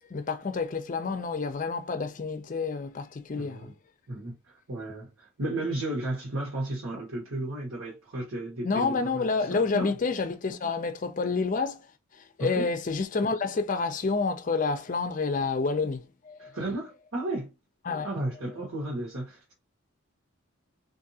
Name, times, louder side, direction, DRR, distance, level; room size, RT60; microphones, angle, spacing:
voice 1, 0.1-3.7 8.6-11.9 12.4-16.5 17.9-18.1, left 4 dB, 35° left, 0.4 m, -29 dB
voice 2, 3.3-3.7 4.1-9.9 12.4-12.7 16.4-17.5 18.0-19.5, right 2 dB, 75° right, 1.2 m, -34 dB
3.7 x 2.6 x 2.7 m
head